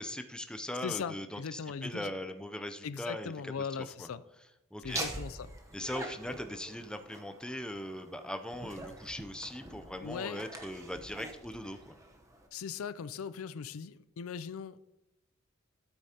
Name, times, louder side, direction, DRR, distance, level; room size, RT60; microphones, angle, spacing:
voice 1, 0.0-3.7 4.0-4.1 4.7-5.0 5.7-12.0, left 1 dB, 5° left, 0.5 m, -40 dB
voice 2, 0.8-2.1 2.8-4.2 4.8-5.5 10.0-10.4 12.5-14.8, left 6 dB, 90° left, 0.4 m, -39 dB
Laughter, 4.8-12.5, right 2 dB, 15° right, 0.9 m, -44 dB
13.0 x 8.3 x 2.9 m
head